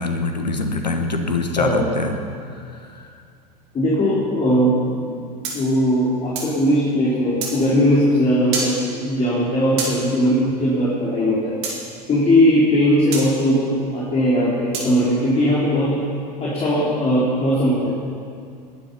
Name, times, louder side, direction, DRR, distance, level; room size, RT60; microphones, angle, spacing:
voice 1, 0.0-2.2 2.8-3.1, left 3 dB, 85° left, 6 dB, 1.5 m, -24 dB
voice 2, 3.7-5.1 5.5-11.5 12.1-16.0 16.4-17.9, equal, 30° left, -7 dB, 4.3 m, -19 dB
sound 1, 5.4-6.6 7.4-7.6 8.5-8.7 9.8-10.0 11.6-11.8 13.1-13.3 14.7-14.9, right 4 dB, 50° right, 3.9 m, -27 dB
20.0 x 10.5 x 5.8 m, 2.3 s
figure-of-eight pair, 75°, 21 cm